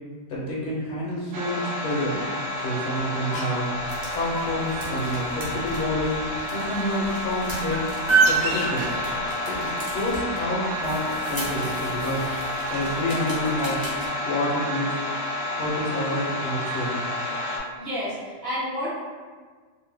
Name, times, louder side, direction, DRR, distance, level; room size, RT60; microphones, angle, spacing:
voice 1, 0.3-2.2 2.6-3.7 4.1-6.2 6.5-7.9 8.3-8.9 9.5-9.6 9.8-12.2 12.7-13.8 14.2-15.0 15.5-17.0, left 1 dB, 65° left, -5 dB, 0.9 m, -28 dB
sound 1, 1.3-17.6, left 1 dB, 80° right, 1.0 m, -30 dB
sound 2, 3.3-3.6 4.3-4.7 5.2-5.5 6.0-6.1 6.4-6.5 7.0-7.1 7.5-7.6 8.2-8.9 9.2-9.3, left 1 dB, 45° left, 0.6 m, -33 dB
sound 3, 3.6-14.1, right 4 dB, 30° right, 0.5 m, -30 dB
voice 2, 17.4-18.9, equal, 55° right, -8 dB, 1.0 m, -31 dB
2.7 x 2.1 x 3.3 m, 1.5 s
omnidirectional pair, 1.4 m